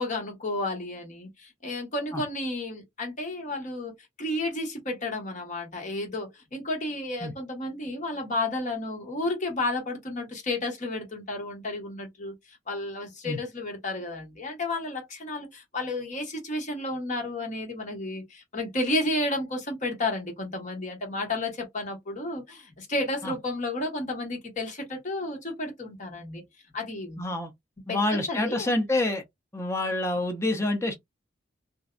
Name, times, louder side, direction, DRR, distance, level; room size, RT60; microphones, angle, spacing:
voice 1, 0.0-26.4 26.7-27.2 27.9-28.7, left 2 dB, 40° left, 1.0 m, -32 dB
voice 2, 27.2-27.5 27.9-29.2 29.5-31.0, left 2 dB, 15° left, 0.5 m, -27 dB
2.5 x 2.1 x 2.4 m
head